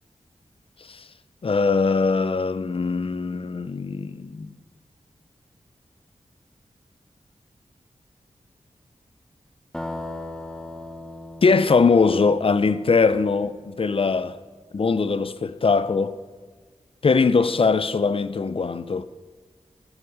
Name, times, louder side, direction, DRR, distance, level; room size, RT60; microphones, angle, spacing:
voice 1, 1.4-4.5 11.4-14.4 14.7-16.1 17.0-19.0, left 4 dB, 50° left, 0.6 m, -21 dB
sound 1, 9.7-13.5, left 1 dB, 5° left, 1.1 m, -38 dB
14.5 x 7.4 x 4.9 m
wide cardioid pair, 65°, 12 cm